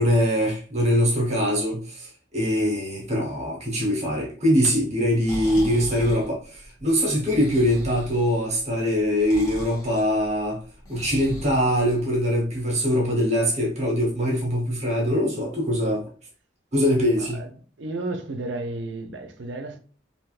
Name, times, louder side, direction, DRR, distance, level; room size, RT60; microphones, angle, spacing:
voice 1, 0.0-10.6 10.9-16.1 16.7-17.4, equal, 40° right, 1.1 m, -23 dB
Breathing, 5.0-12.4, equal, 20° left, 1.2 m, -38 dB
voice 2, 17.2-17.5 17.8-19.8, right 2 dB, 75° right, 0.5 m, -32 dB
3.4 x 2.7 x 2.4 m
head